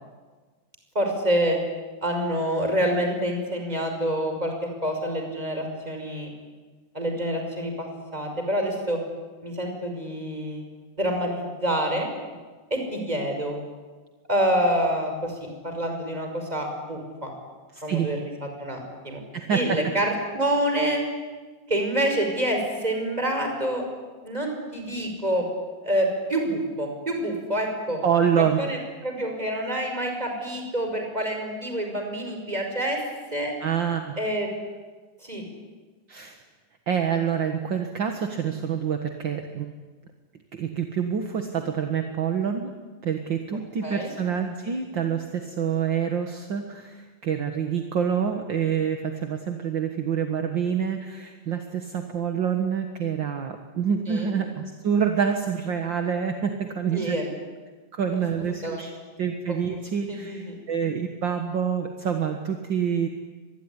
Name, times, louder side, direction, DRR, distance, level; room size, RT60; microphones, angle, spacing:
voice 1, 0.9-1.6 2.0-4.5 4.8-6.3 6.9-9.0 9.4-10.6 11.0-12.1 12.7-13.6 14.3-17.3 17.8-19.2 19.5-21.0 21.7-23.9 24.2-25.5 25.8-28.0 28.6-33.0 33.3-33.5 34.2-34.5 35.2-35.4 43.8-44.1 54.1-54.3 56.9-57.3 58.1-58.2 58.6-58.8 59.5-59.6 60.1-60.6, right 1 dB, 10° right, 3 dB, 5.6 m, -27 dB
voice 2, 17.7-18.1 19.3-19.8 28.0-28.6 33.6-34.1 36.1-36.4 36.9-39.7 40.5-42.7 43.0-57.2 57.9-58.9 59.2-63.1, right 7 dB, 45° right, 5 dB, 1.7 m, -27 dB
25.0 x 21.0 x 10.0 m, 1.4 s
omnidirectional pair, 3.8 m